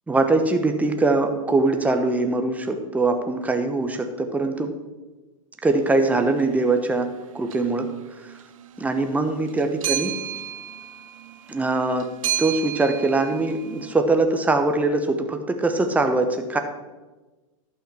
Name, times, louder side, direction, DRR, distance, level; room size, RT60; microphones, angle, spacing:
voice 1, 0.1-4.7 5.6-7.1 7.3-7.9 8.8-10.1 11.5-12.1 12.4-16.6, right 3 dB, 10° right, 6 dB, 1.0 m, -22 dB
sound 1, 6.2-6.4 7.5-7.9 8.2-14.0, right 11 dB, 75° right, 0.7 m, -33 dB
11.5 x 5.8 x 6.3 m, 1.2 s
hypercardioid pair, 115°, 17 cm